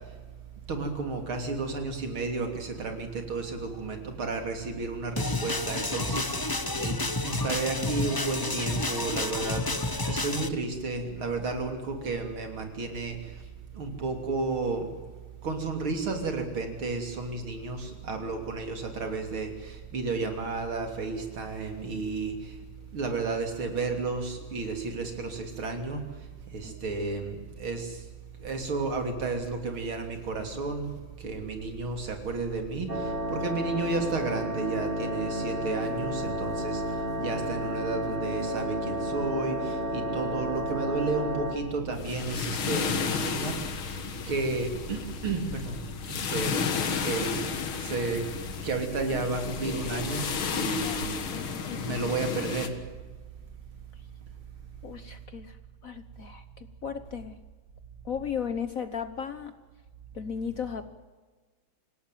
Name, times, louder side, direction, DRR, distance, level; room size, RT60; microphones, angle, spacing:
voice 1, 0.7-9.7 10.0-13.2 13.7-14.9 15.4-22.5 22.9-26.0 26.5-28.0 28.4-30.9 31.2-43.6 44.2-46.5 47.0-47.4 47.8-48.2 48.6-51.2 51.8-52.7, right 3 dB, 75° right, 5 dB, 4.0 m, -32 dB
sound 1, 5.2-10.5, left 2 dB, 25° left, 0.5 m, -30 dB
sound 2, 32.9-41.5, equal, 25° right, 2.5 m, -32 dB
sound 3, 41.9-52.7, left 6 dB, 80° left, 2.5 m, -33 dB
voice 2, 51.3-52.1 54.8-55.6 55.8-57.4 58.0-59.5 60.1-60.8, left 7 dB, 55° left, 11 dB, 1.1 m, -36 dB
26.0 x 17.5 x 9.2 m, 1.4 s
omnidirectional pair, 2.3 m